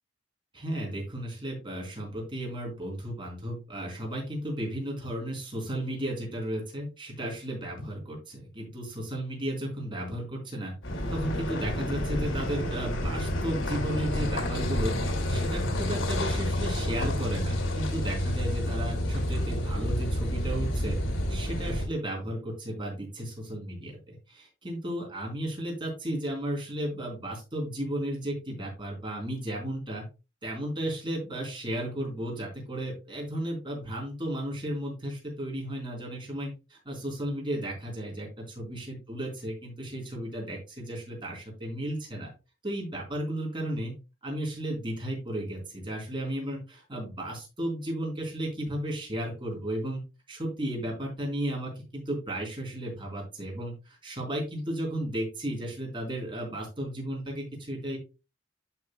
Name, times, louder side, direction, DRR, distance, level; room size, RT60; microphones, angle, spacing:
voice 1, 0.5-10.7 11.1-15.0 15.3-21.0 21.3-30.0 30.4-42.3 42.6-43.9 44.2-50.0 50.3-58.0, right 1 dB, 25° right, -2 dB, 4.1 m, -34 dB
Car passing by / Idling / Accelerating revving vroom, 10.8-21.8, left 1 dB, 90° left, 2.6 m, -29 dB
11.5 x 5.9 x 2.2 m, 0.29 s
head